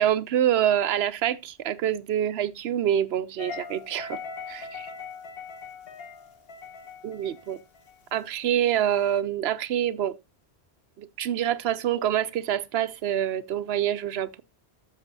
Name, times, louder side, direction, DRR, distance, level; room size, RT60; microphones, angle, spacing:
voice 1, 0.0-4.2 4.5-4.9 7.0-7.6 8.1-10.2 11.0-14.4, right 10 dB, 80° right, 0.9 m, -26 dB
sound 1, 3.4-8.4, left 5 dB, 65° left, 1.3 m, -41 dB
13.5 x 6.6 x 2.6 m
omnidirectional pair, 1.1 m